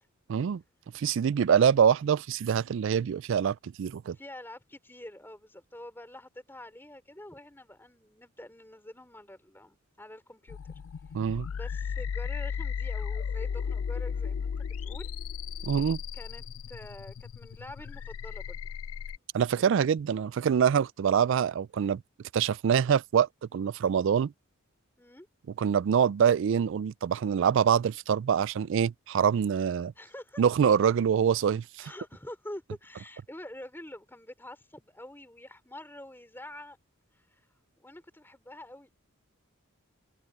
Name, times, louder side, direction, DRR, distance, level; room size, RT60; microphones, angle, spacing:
voice 1, 0.3-0.6 0.9-4.2 11.1-11.5 15.6-16.0 19.3-22.0 22.3-24.3 25.6-29.9 30.4-31.9, right 7 dB, 60° right, 0.3 m, -25 dB
voice 2, 4.1-10.6 11.3-14.5 14.8-15.1 16.1-18.6 25.0-25.3 30.0-30.4 31.8-36.8 37.1-37.5 37.8-38.9, left 1 dB, 10° left, 3.3 m, -46 dB
sound 1, 10.5-19.2, left 6 dB, 85° left, 0.4 m, -35 dB
head